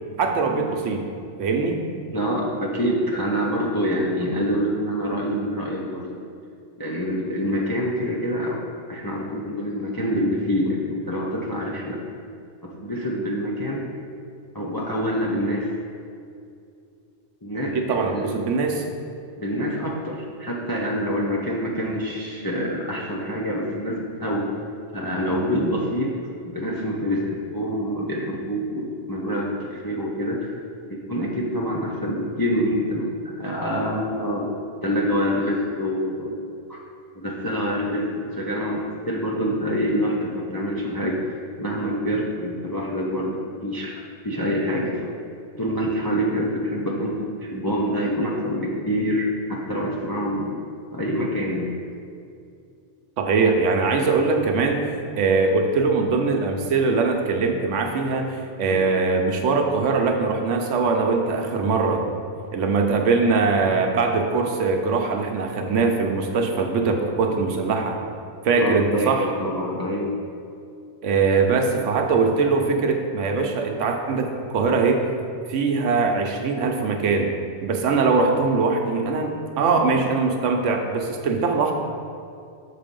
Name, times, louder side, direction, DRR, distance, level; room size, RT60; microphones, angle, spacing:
voice 1, 0.2-1.1 1.4-1.8 17.7-18.8 53.2-54.8 55.2-62.0 62.5-68.0 68.4-69.2 71.0-75.0 75.5-77.3 77.6-81.7, right 4 dB, 80° right, 3 dB, 1.0 m, -22 dB
voice 2, 2.1-6.2 6.8-8.6 8.9-12.0 12.6-13.9 14.5-15.7 17.4-18.3 19.4-24.5 24.9-26.1 26.4-30.5 30.9-34.5 34.8-36.4 36.7-36.8 37.1-45.1 45.6-50.6 50.9-51.7 58.7-58.8 68.6-70.1, equal, 30° left, -3 dB, 0.4 m, -26 dB
6.3 x 4.2 x 5.2 m, 2.5 s
omnidirectional pair, 1.2 m